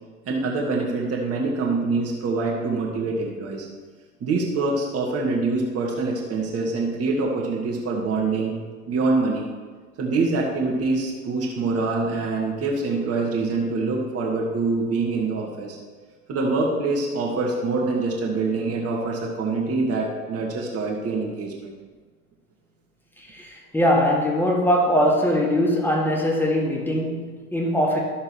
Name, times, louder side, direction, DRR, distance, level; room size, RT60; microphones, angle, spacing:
voice 1, 0.3-3.7 4.2-8.6 8.9-9.5 10.0-15.8 16.3-21.7, right 3 dB, 30° right, -1 dB, 1.7 m, -25 dB
voice 2, 23.3-28.0, equal, 5° left, -1 dB, 1.8 m, -21 dB
13.0 x 6.5 x 3.1 m, 1.5 s
figure-of-eight pair, 75°, 45 cm